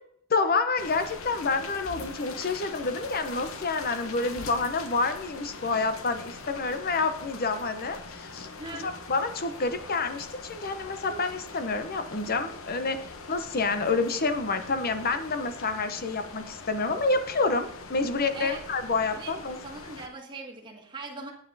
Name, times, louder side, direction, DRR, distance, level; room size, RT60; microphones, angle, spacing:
voice 1, 0.3-8.5 8.8-19.6, left 3 dB, 45° left, 9 dB, 0.9 m, -28 dB
sound 1, 0.8-20.1, left 4 dB, 70° left, 1.0 m, -42 dB
voice 2, 8.6-8.9 18.3-18.6 19.1-19.3 19.6-21.3, right 3 dB, 20° right, 0 dB, 1.7 m, -40 dB
9.6 x 7.4 x 4.1 m, 0.69 s
head